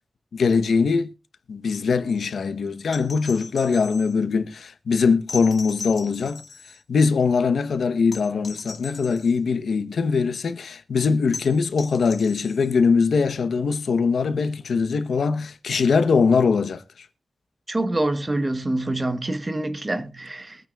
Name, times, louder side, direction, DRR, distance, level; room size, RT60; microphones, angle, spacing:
voice 1, 0.3-1.1 1.5-6.4 6.9-17.1, left 5 dB, 80° left, 0.9 m, -22 dB
sound 1, 2.9-4.2 5.3-6.8 8.1-9.4 11.3-12.8 14.6-14.7, left 4 dB, 45° left, 1.7 m, -39 dB
voice 2, 17.7-20.6, right 2 dB, 20° right, 1.1 m, -26 dB
23.0 x 9.1 x 2.4 m
wide cardioid pair, 165°, 0 cm